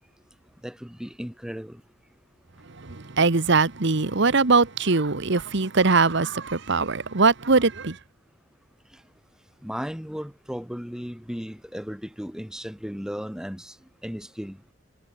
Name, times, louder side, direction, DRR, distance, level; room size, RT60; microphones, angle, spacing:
voice 1, 0.6-1.8 8.9-9.0 9.6-14.6, equal, 5° right, 2.4 m, -35 dB
voice 2, 2.8-8.0, right 4 dB, 65° right, 1.2 m, -21 dB
head